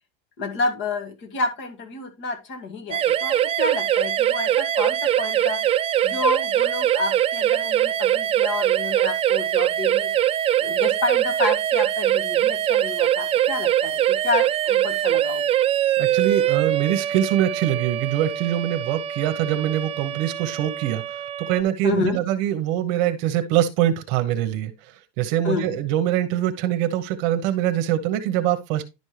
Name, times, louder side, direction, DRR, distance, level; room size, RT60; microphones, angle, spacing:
voice 1, 0.4-5.6 6.0-10.1 10.6-15.5 21.8-22.2 25.4-25.8, left 3 dB, 40° left, 1.9 m, -29 dB
sound 1, 2.9-21.6, right 11 dB, 20° right, 0.4 m, -23 dB
voice 2, 16.0-28.9, right 12 dB, 60° right, 1.0 m, -24 dB
10.5 x 5.3 x 3.2 m
supercardioid pair, 135°, 29 cm